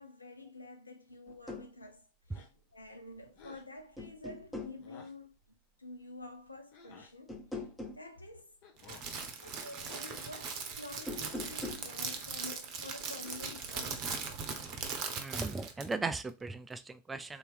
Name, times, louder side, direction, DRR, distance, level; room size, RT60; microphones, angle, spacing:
voice 1, 0.0-2.5 2.7-7.6 8.0-8.5 9.4-14.3, left 2 dB, 80° left, 0.7 m, -49 dB
sound 1, 1.3-1.7 3.2-3.6 4.0-4.8 7.3-8.1 10.9-11.9, left 2 dB, 10° left, 0.8 m, -42 dB
sound 2, 2.3-2.8 3.3-3.7 4.8-5.3 6.7-7.2 8.6-9.2 10.0-10.5 11.5-12.0 13.1-13.8, left 5 dB, 45° left, 0.8 m, -55 dB
Crackle, 8.8-15.9, right 5 dB, 35° right, 0.8 m, -40 dB
voice 2, 15.2-17.4, right 3 dB, 10° right, 0.4 m, -37 dB
3.9 x 2.8 x 3.5 m
figure-of-eight pair, 90°, 0 cm